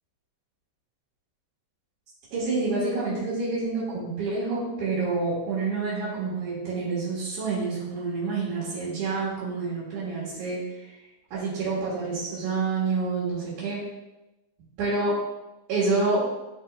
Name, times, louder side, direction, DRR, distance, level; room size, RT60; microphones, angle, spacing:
voice 1, 2.3-10.6 11.3-13.8 14.8-15.1 15.7-16.3, right 3 dB, 85° right, -10 dB, 3.4 m, -28 dB
12.5 x 4.7 x 2.4 m, 1.0 s
omnidirectional pair, 3.4 m